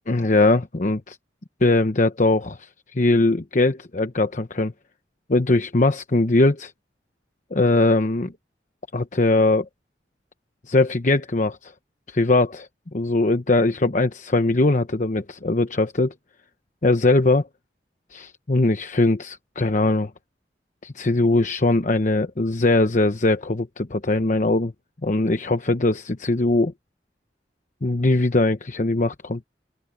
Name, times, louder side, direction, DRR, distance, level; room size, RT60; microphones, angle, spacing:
voice 1, 0.1-1.2 1.6-4.7 5.3-6.7 7.5-8.3 8.9-9.7 10.7-11.7 12.1-12.7 12.9-16.1 16.8-17.4 18.1-20.1 20.8-24.7 25.0-26.7 27.8-29.4, left 2 dB, 45° left, 0.9 m, -21 dB
open air
head